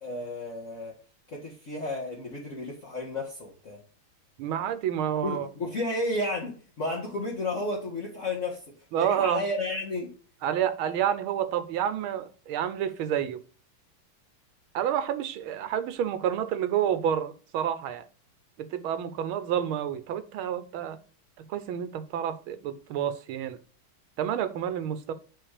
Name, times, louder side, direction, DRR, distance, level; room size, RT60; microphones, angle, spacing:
voice 1, 0.0-0.9 1.3-3.8 5.2-8.6 9.0-10.1, left 2 dB, 40° left, 1.7 m, -32 dB
voice 2, 4.4-5.5 8.9-9.4 10.4-13.4 14.7-18.0 18.6-21.0 21.4-23.6 24.2-25.1, right 9 dB, 80° right, 1.6 m, -29 dB
8.0 x 4.3 x 4.8 m
omnidirectional pair, 2.3 m